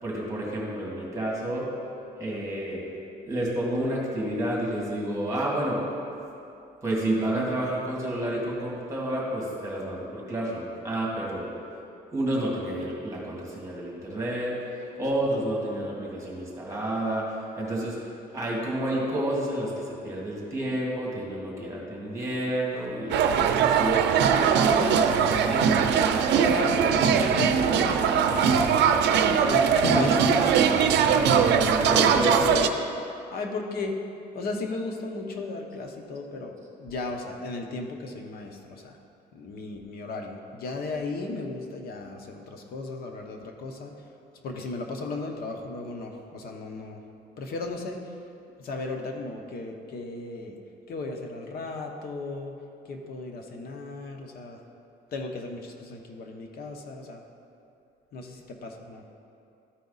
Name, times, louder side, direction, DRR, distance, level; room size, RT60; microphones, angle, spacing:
voice 1, 0.0-1.7 2.2-2.8 3.2-5.8 6.8-11.5 12.1-14.5 15.0-17.2 17.6-18.0 18.3-19.7 20.0-24.0 31.3-32.4, right 1 dB, 15° right, -4 dB, 2.0 m, -30 dB
sound 1, 23.1-32.7, right 7 dB, 85° right, 0.5 m, -21 dB
voice 2, 24.5-28.9 29.5-30.8 31.8-32.0 32.3-32.7 33.3-34.0 34.3-39.0 39.3-43.9 44.4-47.0 47.4-48.0 48.6-50.6 50.9-52.5 52.9-54.6 55.1-57.2 58.1-59.0, left 3 dB, 60° left, 2 dB, 0.9 m, -35 dB
13.5 x 4.7 x 4.0 m, 2.7 s
cardioid pair, 145°, 17 cm